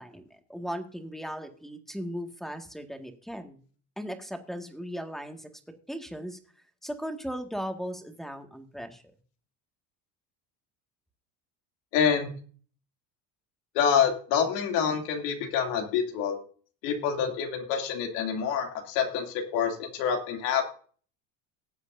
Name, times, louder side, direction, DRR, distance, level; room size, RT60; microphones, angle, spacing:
voice 1, 0.0-3.6 4.0-5.5 5.9-6.4 6.8-9.0, equal, ahead, 4 dB, 1.8 m, -37 dB
voice 2, 11.9-12.3 13.7-16.4 16.8-20.6, left 7 dB, 85° left, 2 dB, 2.9 m, -27 dB
19.0 x 8.0 x 2.7 m, 0.42 s
supercardioid pair, 90°, 49 cm